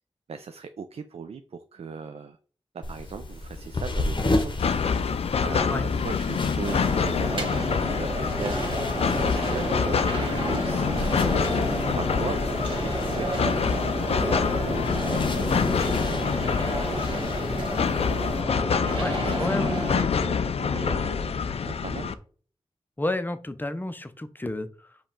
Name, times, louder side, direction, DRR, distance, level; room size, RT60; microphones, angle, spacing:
voice 1, 0.3-2.4 2.7-16.5 16.8-17.2 19.2-19.5 19.8-22.2, right 5 dB, 70° right, 9 dB, 0.4 m, -39 dB
sound 1, 2.8-18.4, left 2 dB, 45° left, 0.8 m, -34 dB
sound 2, 4.6-22.1, left 6 dB, 70° left, 0.4 m, -26 dB
sound 3, 6.6-20.0, right 1 dB, 50° right, 1.6 m, -31 dB
voice 2, 19.0-19.8 23.0-25.0, left 1 dB, 20° left, 10 dB, 0.6 m, -31 dB
5.1 x 2.3 x 4.3 m, 0.43 s
cardioid pair, 45°, 11 cm